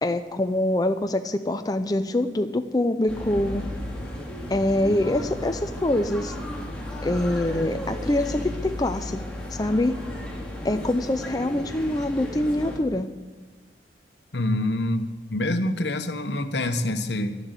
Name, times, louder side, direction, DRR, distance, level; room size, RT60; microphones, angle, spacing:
voice 1, 0.0-3.6 4.5-6.3 7.0-9.2 9.5-10.0 10.6-13.1, left 1 dB, 20° left, 8 dB, 0.5 m, -24 dB
sound 1, 3.1-12.8, left 1 dB, 5° left, 2.6 m, -34 dB
voice 2, 14.3-17.4, left 1 dB, 75° left, 9 dB, 1.2 m, -26 dB
12.0 x 11.0 x 8.1 m, 1.3 s
head